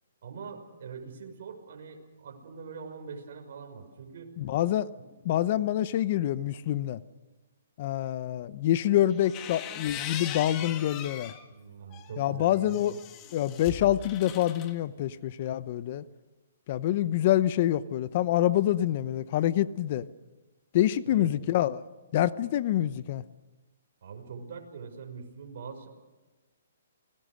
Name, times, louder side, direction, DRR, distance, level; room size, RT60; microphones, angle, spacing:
voice 1, 0.2-4.3 5.0-5.1 5.5-5.7 5.9-6.3 11.5-13.0 21.0-21.3 24.0-25.9, right 5 dB, 60° right, 6.1 m, -43 dB
voice 2, 4.4-4.9 5.2-7.0 7.8-11.3 12.2-12.9 13.3-16.0 16.7-20.1 20.7-21.8 22.1-23.2, left 12 dB, 40° left, 0.8 m, -26 dB
sound 1, 9.1-11.4 11.9-14.7, left 10 dB, 25° left, 1.8 m, -40 dB
29.0 x 20.5 x 6.5 m
hypercardioid pair, 155°, 0 cm